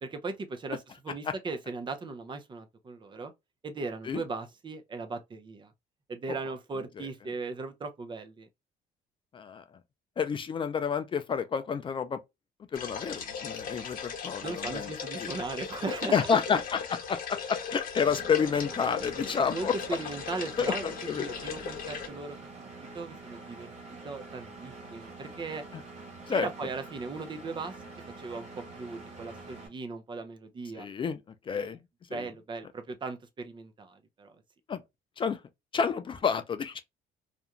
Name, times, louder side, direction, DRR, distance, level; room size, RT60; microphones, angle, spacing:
voice 1, 0.0-3.3 3.6-5.7 6.1-8.5 14.4-16.6 19.2-22.4 22.6-25.6 26.3-27.7 28.2-30.9 31.5-31.7 32.1-34.3, right 3 dB, 30° right, 0.6 m, -38 dB
voice 2, 9.3-9.6 10.2-12.2 12.7-14.9 15.2-15.3 16.1-19.8 20.6-21.3 25.7-25.8 26.3-26.5 30.8-31.2 31.5-31.8 32.1-32.2 34.7-34.8 35.2-35.4 35.7-36.8, left 6 dB, 30° left, 0.3 m, -29 dB
sound 1, 12.7-22.1, left 7 dB, 55° left, 0.8 m, -38 dB
Engine, 18.0-29.7, right 3 dB, 45° right, 1.1 m, -46 dB
2.5 x 2.2 x 2.9 m
cardioid pair, 110°, 17 cm